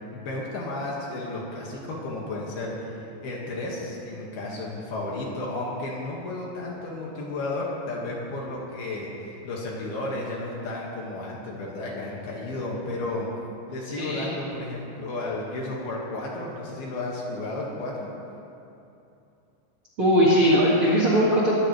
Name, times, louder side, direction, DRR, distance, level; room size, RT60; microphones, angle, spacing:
voice 1, 0.1-13.3 13.7-18.1, left 2 dB, 60° left, -3 dB, 3.2 m, -33 dB
voice 2, 14.0-14.3 20.0-21.5, equal, 45° right, -6 dB, 1.8 m, -20 dB
21.5 x 15.0 x 3.2 m, 2.8 s
omnidirectional pair, 5.6 m